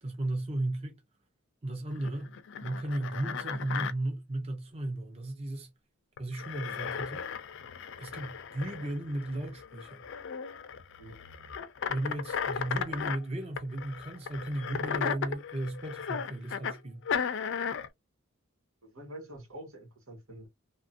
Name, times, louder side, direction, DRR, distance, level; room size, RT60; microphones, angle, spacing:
voice 1, 0.0-1.0 1.6-5.7 6.2-7.2 8.0-10.0 11.9-17.0, right 1 dB, 30° right, 0.6 m, -35 dB
sound 1, 2.0-3.9 6.2-13.2 13.6-16.8 17.1-17.9, left 7 dB, 60° left, 0.4 m, -36 dB
voice 2, 18.8-20.5, right 1 dB, 85° right, 1.5 m, -46 dB
2.9 x 2.5 x 2.5 m
head